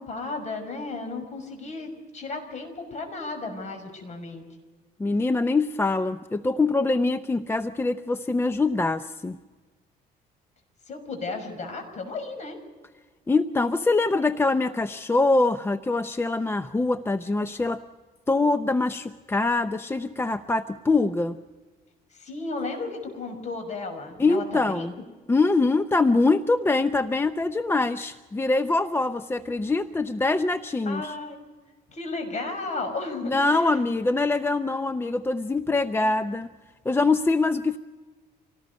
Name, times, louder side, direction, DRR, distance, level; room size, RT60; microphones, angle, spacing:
voice 1, 0.0-4.4 10.9-12.6 22.1-24.9 30.9-31.4 31.9-33.8 36.0-36.1, left 3 dB, 45° left, 5 dB, 5.9 m, -34 dB
voice 2, 5.0-9.4 13.3-17.8 18.3-21.4 24.2-24.9 25.3-31.2 33.2-36.5 36.8-37.8, left 3 dB, 15° left, 11 dB, 0.6 m, -24 dB
26.0 x 18.5 x 5.3 m, 1.3 s
cardioid pair, 110°, 17 cm